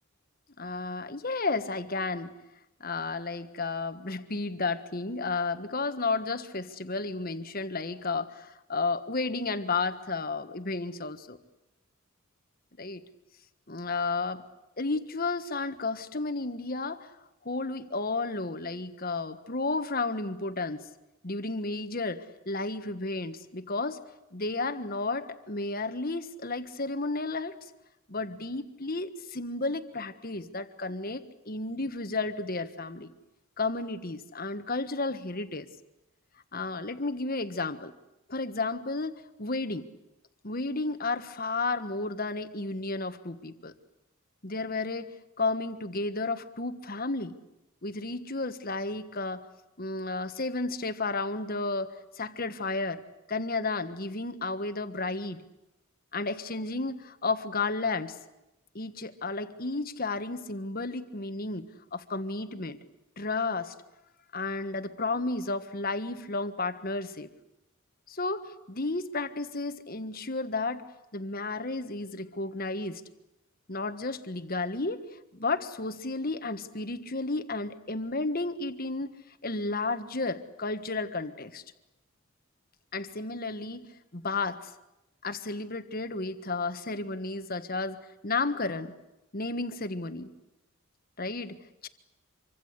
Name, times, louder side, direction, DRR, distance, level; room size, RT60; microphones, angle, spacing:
voice 1, 0.6-2.3 2.8-11.4 12.8-13.0 13.7-14.4 14.8-17.1 17.4-20.9 21.2-24.0 24.3-27.6 28.1-33.1 33.6-35.7 36.5-37.9 38.3-39.9 40.4-43.7 44.4-45.1 45.4-47.3 47.8-49.4 49.8-53.0 53.3-55.4 56.1-58.1 58.7-61.6 61.9-62.8 63.2-63.7 64.3-67.3 68.1-70.8 71.1-73.0 73.7-81.6 82.9-84.7 85.2-88.9 89.3-90.3 91.2-91.6 91.8-91.9, left 3 dB, 45° left, 10 dB, 1.5 m, -32 dB
27.0 x 24.5 x 8.3 m, 0.92 s
head